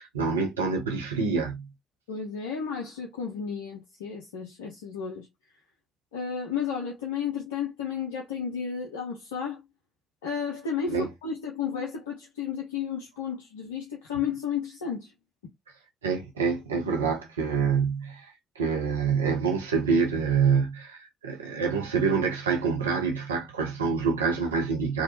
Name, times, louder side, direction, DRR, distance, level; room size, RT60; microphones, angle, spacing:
voice 1, 0.0-1.7 10.9-11.1 16.0-25.0, right 5 dB, 80° right, 0.5 m, -26 dB
voice 2, 2.1-5.3 6.1-9.6 10.2-15.1, left 7 dB, 75° left, 0.4 m, -32 dB
2.7 x 2.2 x 2.8 m
figure-of-eight pair, 40°, 0 cm